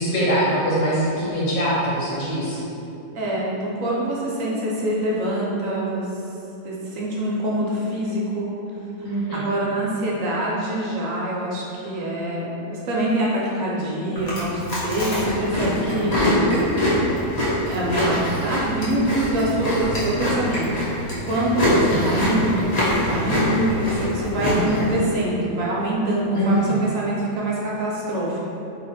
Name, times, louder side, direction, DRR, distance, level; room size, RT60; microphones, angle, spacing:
voice 1, 0.0-2.6 9.0-9.5 21.6-22.0 26.3-26.8, equal, 85° left, -8 dB, 1.5 m, -23 dB
voice 2, 3.1-6.1 6.6-8.6 9.3-16.4 17.7-20.7 21.2-28.4, right 1 dB, 65° right, -5 dB, 0.9 m, -25 dB
Chewing mastication, 14.1-25.0, left 1 dB, 35° left, 0.6 m, -23 dB
3.0 x 2.5 x 3.9 m, 3.0 s
omnidirectional pair, 1.7 m